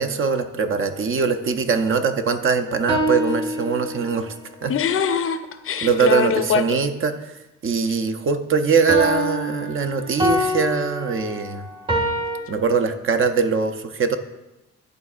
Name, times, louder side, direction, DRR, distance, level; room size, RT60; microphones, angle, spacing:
voice 1, 0.0-4.3 4.6-4.7 5.8-7.3 7.6-11.6 12.5-14.2, right 5 dB, 45° right, 8 dB, 0.6 m, -22 dB
sound 1, 2.4-4.3 8.9-12.4, equal, 15° right, 0.8 m, -26 dB
voice 2, 4.7-6.8 7.9-8.0, left 7 dB, 45° left, 9 dB, 0.5 m, -23 dB
11.0 x 3.6 x 2.4 m, 0.95 s
cardioid pair, 90°, 30 cm